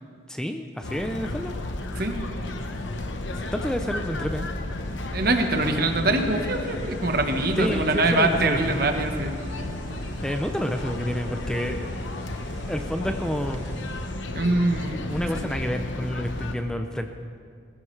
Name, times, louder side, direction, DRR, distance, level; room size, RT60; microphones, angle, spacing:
voice 1, 0.3-1.5 3.5-4.5 7.6-8.7 10.2-11.9 12.7-13.6 15.1-17.1, equal, 5° left, 5 dB, 0.5 m, -29 dB
sound 1, 0.8-16.5, left 1 dB, 75° left, 1.0 m, -33 dB
sound 2, 4.6-14.1, right 1 dB, 75° right, 2.4 m, -47 dB
voice 2, 5.1-9.4 14.3-15.0 15.3-15.5, right 2 dB, 50° right, 5 dB, 1.2 m, -24 dB
20.0 x 15.5 x 3.3 m, 2.2 s
head